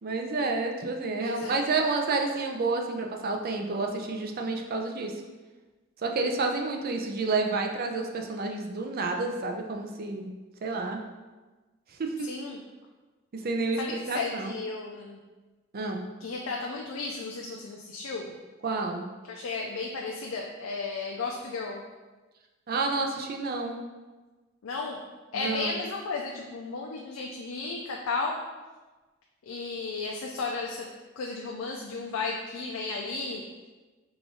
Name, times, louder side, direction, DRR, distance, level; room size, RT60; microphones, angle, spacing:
voice 1, 0.0-5.1 6.0-10.3 10.6-11.0 12.0-12.1 13.3-14.5 15.7-16.0 18.6-19.1 22.7-23.8 25.3-25.8, right 3 dB, 45° right, 2 dB, 0.5 m, -29 dB
voice 2, 1.2-1.6 12.3-12.6 13.8-15.2 16.2-18.3 19.3-21.8 24.6-25.0 25.3-28.4 29.5-30.9 31.2-33.4, left 3 dB, 80° left, 0 dB, 0.4 m, -34 dB
4.9 x 2.5 x 3.7 m, 1.2 s
head